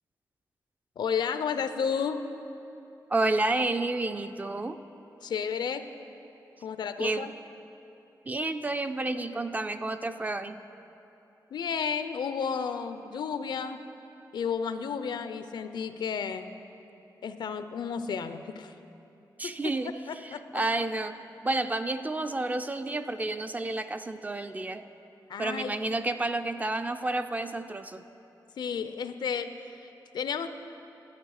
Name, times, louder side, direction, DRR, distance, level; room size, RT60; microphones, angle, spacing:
voice 1, 1.0-2.3 5.2-5.9 6.6-7.3 11.5-13.8 14.3-16.5 17.2-18.7 19.4-19.5 20.1-20.6 25.3-25.7 28.6-29.5 30.1-30.5, left 6 dB, 80° left, 10 dB, 0.5 m, -32 dB
voice 2, 3.1-4.8 7.0-7.4 8.3-10.6 19.4-24.9 25.4-28.0, right 2 dB, 20° right, 9 dB, 0.4 m, -30 dB
12.0 x 8.1 x 6.4 m, 2.9 s
wide cardioid pair, 135°, 7 cm